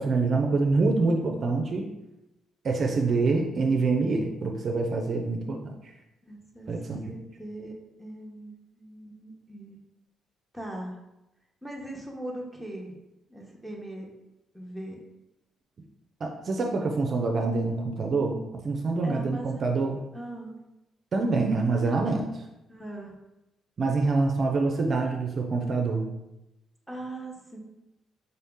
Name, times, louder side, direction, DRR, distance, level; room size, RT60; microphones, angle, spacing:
voice 1, 0.0-1.9 2.6-5.7 6.7-7.0 16.2-18.4 18.6-20.0 21.1-22.4 23.8-26.1, right 3 dB, 50° right, 2 dB, 0.5 m, -26 dB
voice 2, 0.9-1.4 6.2-6.7 7.1-7.7 8.0-9.8 10.5-11.0 11.6-13.0 13.3-14.2 14.5-15.0 19.0-19.9 20.1-20.5 21.8-21.9 22.7-23.1 26.9-27.6, right 1 dB, ahead, -2 dB, 0.9 m, -40 dB
3.8 x 2.7 x 3.6 m, 0.92 s
cardioid pair, 90°, 0 cm